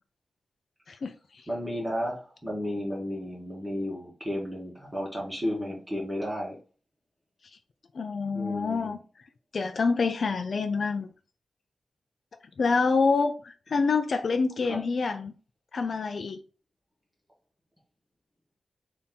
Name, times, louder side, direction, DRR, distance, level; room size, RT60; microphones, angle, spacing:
voice 1, 0.9-1.4 7.9-9.0 9.5-11.1 12.6-15.3 15.7-16.4, left 4 dB, 50° left, 0.4 m, -27 dB
voice 2, 1.5-6.6 8.3-9.0 14.7-14.8, equal, 15° right, 1.2 m, -33 dB
4.1 x 2.7 x 3.5 m
wide cardioid pair, 180°, 0 cm